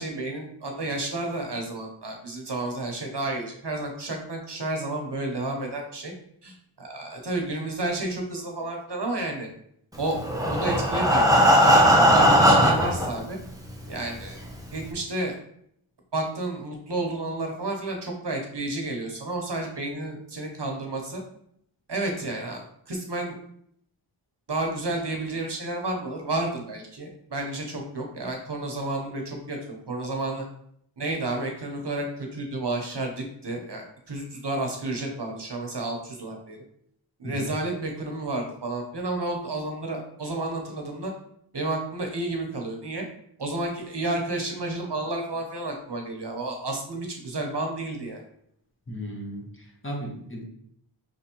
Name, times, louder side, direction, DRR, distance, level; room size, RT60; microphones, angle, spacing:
voice 1, 0.0-6.1 6.4-9.5 10.0-10.2 10.5-13.4 13.9-14.4 14.7-15.4 16.1-21.2 21.9-23.4 24.5-30.4 31.0-36.6 37.2-41.1 41.5-43.0 43.4-48.2, right 2 dB, 55° right, 2 dB, 1.0 m, -31 dB
Breathing, 10.1-13.1 13.8-13.9 14.3-14.4 14.8-14.9, equal, 5° right, 0.9 m, -18 dB
voice 2, 48.9-50.4, equal, 25° left, 0 dB, 1.2 m, -36 dB
5.0 x 3.4 x 3.0 m, 0.70 s
wide cardioid pair, 40°, 49 cm